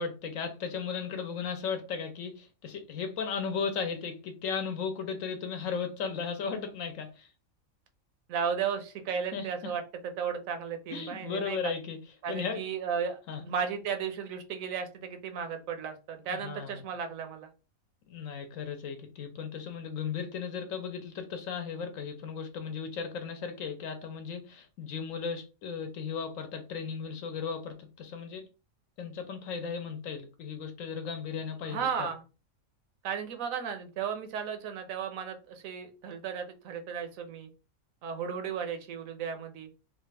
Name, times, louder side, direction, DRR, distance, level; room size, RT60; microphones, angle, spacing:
voice 1, 0.0-7.3 9.3-9.7 10.9-12.0 12.3-12.6 13.3-13.4 16.3-16.8 18.1-28.4 29.0-32.1, left 6 dB, 70° left, 1.0 m, -36 dB
voice 2, 8.3-11.7 12.2-17.5 31.7-32.2 33.0-37.5 38.0-39.7, right 7 dB, 75° right, 1.0 m, -35 dB
3.3 x 2.4 x 3.3 m
omnidirectional pair, 1.5 m